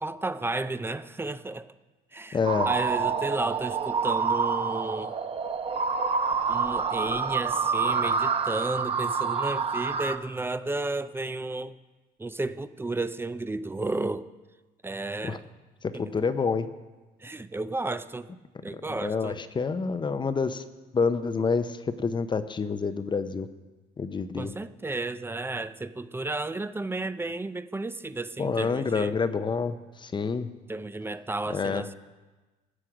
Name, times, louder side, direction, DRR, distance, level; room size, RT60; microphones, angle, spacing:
voice 1, 0.0-1.7 2.1-2.4 2.6-5.2 6.5-11.8 12.2-14.3 14.8-15.4 15.9-16.1 17.2-18.3 18.6-19.4 24.4-29.1 30.7-31.9, right 2 dB, 15° right, 13 dB, 0.4 m, -32 dB
voice 2, 2.3-2.7 15.2-15.4 15.8-16.7 18.7-20.6 20.9-23.5 24.0-24.6 28.4-30.5 31.5-31.8, left 5 dB, 25° left, 11 dB, 0.6 m, -28 dB
sound 1, 2.4-10.2, right 5 dB, 35° right, 0.8 m, -27 dB
16.0 x 7.7 x 4.9 m, 1.2 s
cardioid pair, 110°, 17 cm